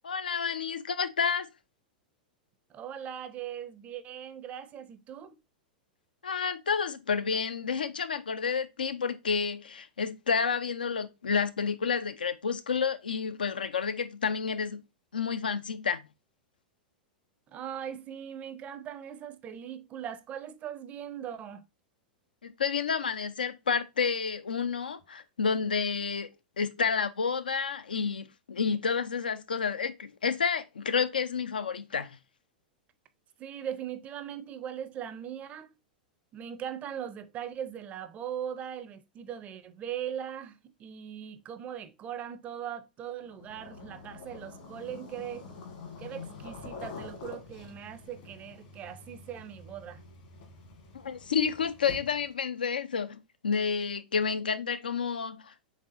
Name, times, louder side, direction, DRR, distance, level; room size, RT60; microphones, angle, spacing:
voice 1, 0.0-1.5 6.2-14.8 15.1-16.0 22.4-26.3 26.6-32.2 50.9-55.6, left 6 dB, 80° left, 0.4 m, -30 dB
voice 2, 2.7-5.4 17.5-21.6 33.4-35.8 36.3-45.4 46.0-50.0, right 9 dB, 30° right, 0.5 m, -40 dB
sound 1, 43.2-52.4, left 4 dB, 60° left, 1.5 m, -46 dB
4.0 x 3.6 x 2.5 m
figure-of-eight pair, 100°, 5 cm